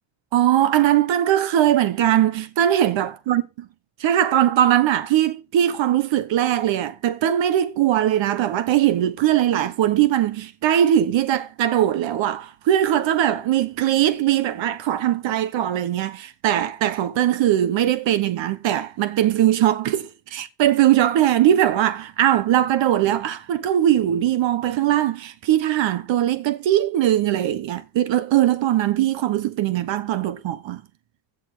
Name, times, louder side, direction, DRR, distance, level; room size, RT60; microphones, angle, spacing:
voice 1, 0.3-3.4 4.0-30.8, right 11 dB, 65° right, 1.2 m, -20 dB
16.0 x 6.8 x 6.6 m
cardioid pair, 170°, 49 cm